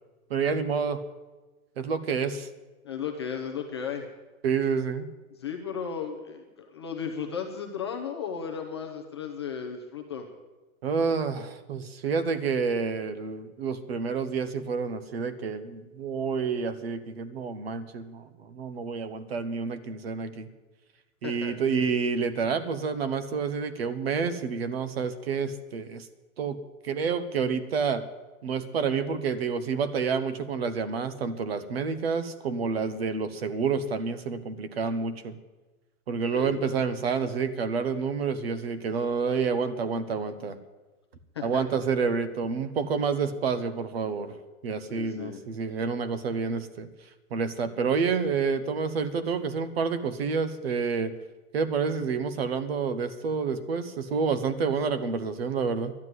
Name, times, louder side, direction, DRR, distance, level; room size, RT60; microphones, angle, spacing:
voice 1, 0.3-1.0 1.8-2.5 4.4-5.1 10.8-20.5 21.2-26.1 26.4-28.1 28.4-35.4 36.1-40.6 41.4-44.4 44.6-46.9 47.3-51.1 51.5-55.9, right 5 dB, 45° right, 13 dB, 1.0 m, -29 dB
voice 2, 2.8-4.1 5.4-10.3 21.2-21.5 36.3-36.6 41.3-41.6 44.9-45.4, left 7 dB, 20° left, 2 dB, 0.6 m, -35 dB
12.0 x 9.6 x 9.3 m, 1.2 s
hypercardioid pair, 175°, 43 cm